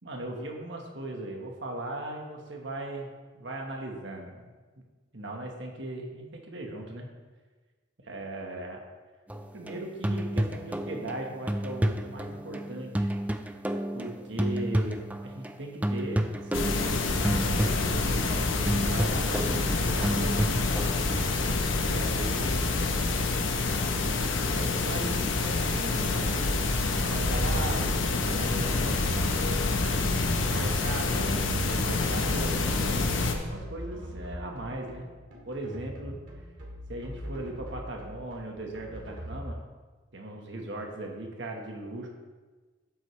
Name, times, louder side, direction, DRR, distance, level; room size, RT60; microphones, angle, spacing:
voice 1, 0.0-3.1 3.3-4.5 5.1-7.1 8.0-8.8 9.5-13.1 13.9-15.0 15.2-20.4 21.8-22.9 24.5-26.3 26.9-29.4 29.9-35.1 35.4-36.2 36.9-39.6 40.1-42.1, right 1 dB, 65° right, 1 dB, 1.5 m, -38 dB
sound 1, 9.3-15.6 15.8-21.2, right 1 dB, 10° right, 0.4 m, -31 dB
sound 2, 16.5-33.3, left 3 dB, 85° left, 1.0 m, -27 dB
sound 3, 26.0-39.4, equal, 85° right, 2.2 m, -42 dB
12.0 x 8.1 x 3.3 m, 1.4 s
head